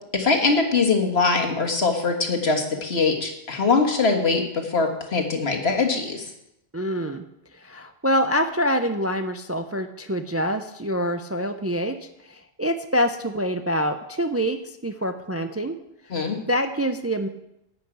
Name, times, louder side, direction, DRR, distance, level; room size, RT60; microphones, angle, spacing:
voice 1, 0.1-6.3 16.1-16.4, left 4 dB, 70° left, 3 dB, 1.8 m, -22 dB
voice 2, 6.7-7.2 7.5-15.8 16.1-17.3, equal, 20° right, 8 dB, 0.4 m, -26 dB
11.0 x 5.9 x 8.7 m, 0.83 s
omnidirectional pair, 1.1 m